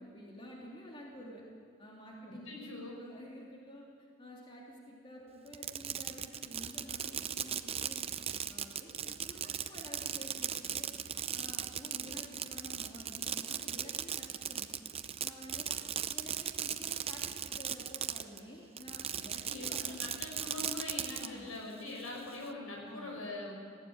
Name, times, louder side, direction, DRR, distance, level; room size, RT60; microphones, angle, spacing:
voice 1, 0.0-1.4 1.8-3.9 4.2-8.1 8.5-10.9 11.3-14.8 15.2-15.8 16.1-20.1 21.2-21.5 22.9-23.2, equal, 25° left, -3 dB, 3.0 m, -50 dB
voice 2, 2.5-3.0 19.5-23.5, left 2 dB, 80° left, -1 dB, 6.1 m, -43 dB
Fireworks, 5.5-18.4 18.8-21.3, right 9 dB, 30° right, 0.7 m, -37 dB
19.0 x 16.5 x 8.8 m, 2.2 s
head